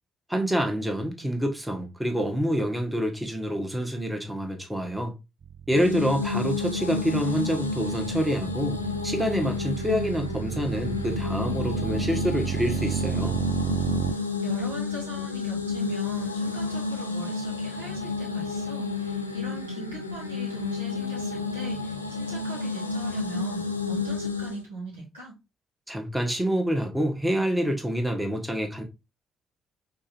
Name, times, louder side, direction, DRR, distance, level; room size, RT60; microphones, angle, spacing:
voice 1, 0.3-5.1 5.7-8.8 9.0-13.4 25.9-28.8, equal, 10° right, 1.2 m, -27 dB
sound 1, 5.4-14.1, right 9 dB, 45° right, 0.3 m, -32 dB
sound 2, 5.7-24.6, left 4 dB, 90° left, 0.4 m, -31 dB
voice 2, 14.4-25.4, right 2 dB, 80° right, 1.8 m, -40 dB
5.3 x 3.3 x 2.7 m
figure-of-eight pair, 40°, 0 cm